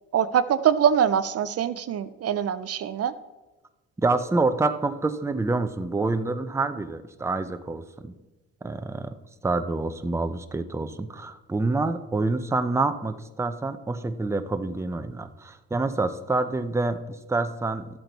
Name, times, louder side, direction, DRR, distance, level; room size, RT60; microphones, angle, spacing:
voice 1, 0.1-3.1, right 9 dB, 55° right, 13 dB, 0.5 m, -23 dB
voice 2, 4.0-8.1 8.6-9.1 9.4-17.9, right 3 dB, 10° right, 9 dB, 0.6 m, -27 dB
12.0 x 7.9 x 4.1 m, 1.2 s
cardioid pair, 90°, 30 cm